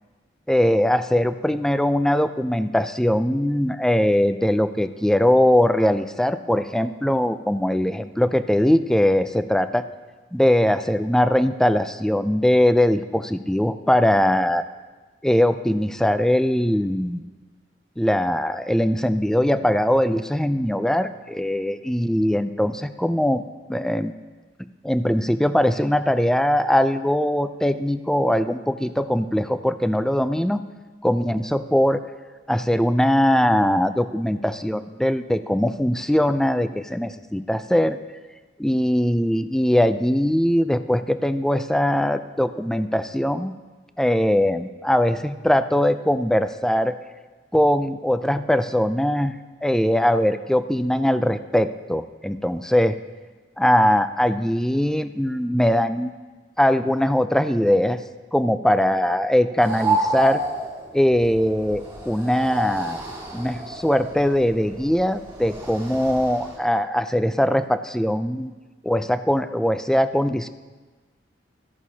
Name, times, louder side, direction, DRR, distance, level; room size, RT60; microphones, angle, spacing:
voice 1, 0.5-9.8 10.3-14.7 15.2-17.2 18.0-23.4 23.7-24.1 24.8-30.6 31.0-32.0 32.5-38.0 38.6-43.5 44.0-47.0 47.5-49.3 49.6-53.0 53.6-56.1 56.6-58.0 58.3-60.4 60.9-63.0 63.3-68.5 68.8-70.5, left 1 dB, 5° left, 11 dB, 0.3 m, -21 dB
sound 1, 59.6-66.6, right 2 dB, 15° right, 2.2 m, -30 dB
14.0 x 11.0 x 2.8 m, 1.3 s
head